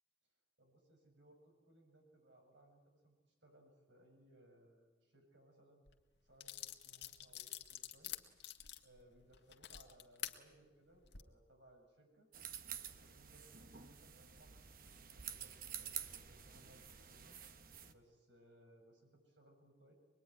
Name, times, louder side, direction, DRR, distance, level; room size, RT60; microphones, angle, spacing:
voice 1, 0.6-5.9 6.2-8.1 8.5-8.6 8.8-12.3 12.9-17.4 17.9-19.9, right 1 dB, 85° right, 2 dB, 7.7 m, -66 dB
sound 1, 5.9-6.0 6.4-10.4 10.9-11.2, left 12 dB, 70° left, 1.7 m, -47 dB
sound 2, 12.3-17.9, right 9 dB, 50° right, 1.2 m, -50 dB
25.0 x 21.5 x 9.7 m, 1.1 s
head